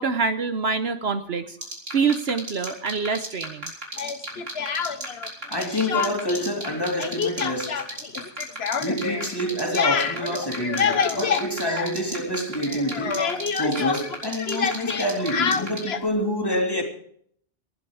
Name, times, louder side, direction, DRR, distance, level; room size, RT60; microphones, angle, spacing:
voice 1, 0.0-1.6 1.9-3.7 13.8-13.9, right 5 dB, 60° right, 1.1 m, -25 dB
sound 1, 1.6-15.8, right 2 dB, 85° right, 4.4 m, -32 dB
Speech, 4.0-5.3 5.6-6.5 6.7-12.4 12.7-16.1, left 6 dB, 60° left, 1.2 m, -27 dB
voice 2, 5.5-7.8 8.8-13.2 13.6-16.8, equal, 20° left, 2.9 m, -27 dB
19.0 x 12.0 x 4.8 m
omnidirectional pair, 1.2 m